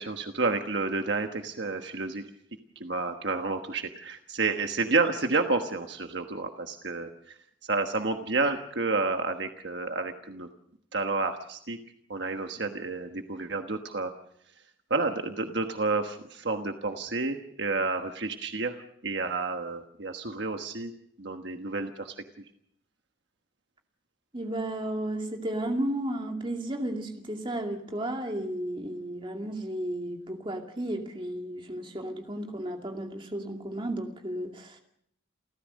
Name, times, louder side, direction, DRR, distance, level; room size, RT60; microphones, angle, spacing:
voice 1, 0.0-2.2 2.8-7.3 7.6-10.5 10.9-11.8 12.1-14.1 14.9-18.8 19.0-20.9 21.2-22.1, right 3 dB, 60° right, 5 dB, 1.3 m, -30 dB
voice 2, 24.3-34.8, right 1 dB, 25° right, 3 dB, 2.4 m, -33 dB
29.0 x 14.5 x 6.5 m, 0.72 s
head